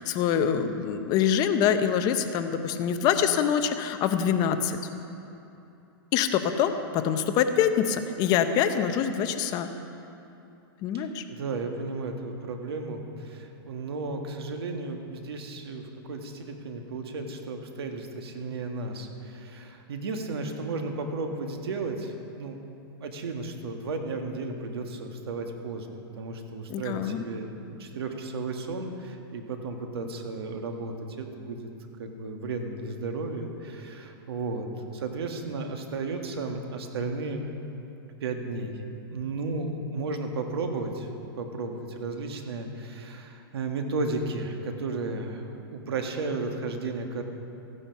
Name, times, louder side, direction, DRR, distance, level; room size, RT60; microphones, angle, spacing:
voice 1, 0.0-4.8 6.1-9.7 10.8-11.2 26.7-27.3, left 8 dB, 30° left, 8 dB, 0.7 m, -25 dB
voice 2, 10.9-22.6 23.0-31.7 32.0-34.7 34.9-37.5 38.2-41.1 41.4-47.2, right 3 dB, 85° right, 4 dB, 1.7 m, -34 dB
15.0 x 9.9 x 5.9 m, 2.8 s
hypercardioid pair, 150°, 13 cm